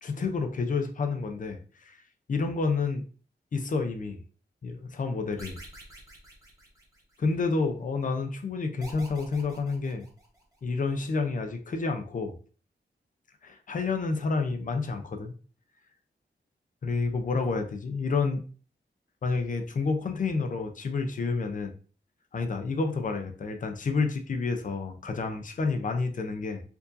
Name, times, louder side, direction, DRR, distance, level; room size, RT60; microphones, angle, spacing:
voice 1, 0.0-2.0 2.3-3.0 3.5-4.2 4.6-5.6 7.2-10.1 10.6-12.4 13.4-15.3 16.8-18.4 19.2-21.7 22.3-26.7, left 4 dB, 45° left, 5 dB, 0.5 m, -29 dB
sound 1, 5.4-7.3 8.8-10.6, right 1 dB, 20° right, 1.1 m, -48 dB
4.5 x 2.7 x 2.5 m, 0.40 s
wide cardioid pair, 145°, 19 cm